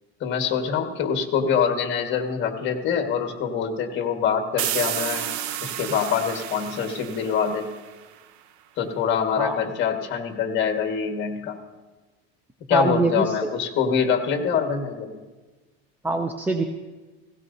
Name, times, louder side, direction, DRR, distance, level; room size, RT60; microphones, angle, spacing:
voice 1, 0.2-5.3 5.6-7.7 8.8-11.6 12.7-15.2, left 7 dB, 35° left, 4 dB, 1.6 m, -25 dB
sound 1, 4.6-8.2, right 11 dB, 80° right, 0.9 m, -31 dB
voice 2, 12.7-13.4 16.0-16.6, right 3 dB, 5° right, 6 dB, 0.4 m, -23 dB
17.0 x 17.0 x 2.7 m, 1.3 s
supercardioid pair, 145°, 32 cm